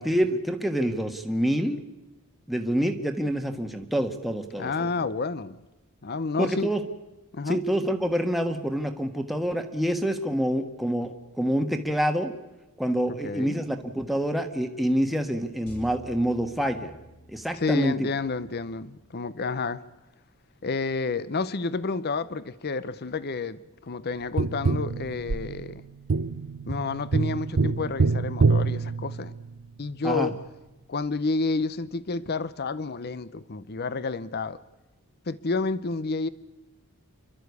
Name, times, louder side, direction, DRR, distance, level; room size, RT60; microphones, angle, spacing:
voice 1, 0.0-1.8 2.5-4.9 6.4-6.8 7.5-12.3 12.8-16.9 17.3-18.1 30.0-30.3, equal, ahead, 1.3 m, -27 dB
voice 2, 4.6-5.6 6.0-6.7 7.3-7.6 13.1-13.6 17.5-19.8 20.6-25.8 26.7-29.3 29.8-30.4 30.9-34.6 35.3-36.3, left 4 dB, 45° left, 0.7 m, -30 dB
sound 1, 15.7-20.0, equal, 80° left, 5.6 m, -51 dB
Tap, 24.4-29.7 32.3-32.4, right 4 dB, 65° right, 0.7 m, -26 dB
30.0 x 12.5 x 8.2 m
head